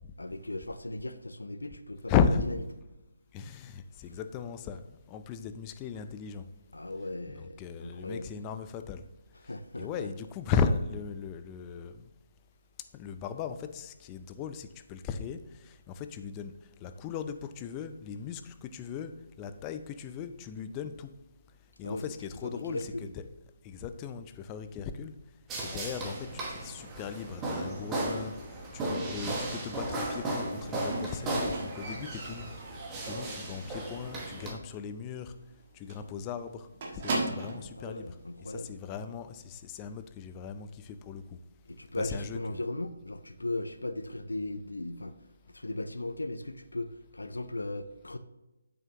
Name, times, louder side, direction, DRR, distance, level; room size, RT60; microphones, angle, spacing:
voice 1, 0.2-2.2 6.7-8.3 9.4-10.1 21.8-22.0 22.4-23.1 37.8-38.7 41.7-45.2 45.5-48.2, left 2 dB, 80° left, 0.5 m, -37 dB
voice 2, 2.1-2.5 3.3-6.5 7.3-9.1 9.4-12.1 12.9-16.5 16.8-19.1 19.4-21.1 21.8-23.3 23.6-25.1 25.6-28.4 28.7-32.5 33.0-35.3 35.7-36.7 36.9-38.2 38.4-41.4 41.9-42.7, left 6 dB, 20° left, 0.4 m, -36 dB
sound 1, 25.5-34.5, right 1 dB, 15° right, 1.1 m, -35 dB
Squeak, 30.9-33.7 34.0-34.4 34.7-34.8 35.1-35.2 35.5-35.6 35.9-37.7 38.6-38.7, right 2 dB, 35° right, 1.5 m, -37 dB
7.1 x 5.7 x 2.9 m
figure-of-eight pair, 150°, 0 cm